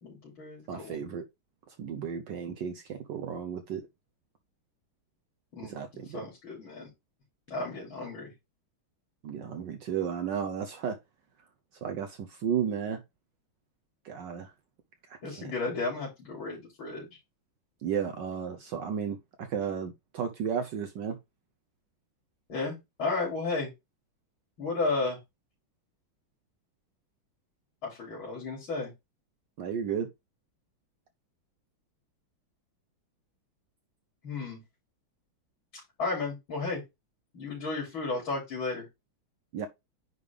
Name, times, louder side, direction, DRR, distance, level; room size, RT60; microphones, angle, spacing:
voice 1, 0.0-1.0 5.5-6.9 7.5-8.3 15.2-17.1 22.5-23.7 24.6-25.2 27.8-28.9 34.2-34.6 36.0-36.8 37.3-38.9, left 3 dB, 75° left, 3.8 m, -33 dB
voice 2, 0.7-1.2 1.7-3.9 5.6-6.2 9.2-11.0 11.8-13.0 14.0-14.5 15.1-15.5 17.8-21.2 29.6-30.1 39.5-39.7, right 7 dB, 65° right, 1.3 m, -33 dB
9.6 x 3.6 x 3.4 m
omnidirectional pair, 2.2 m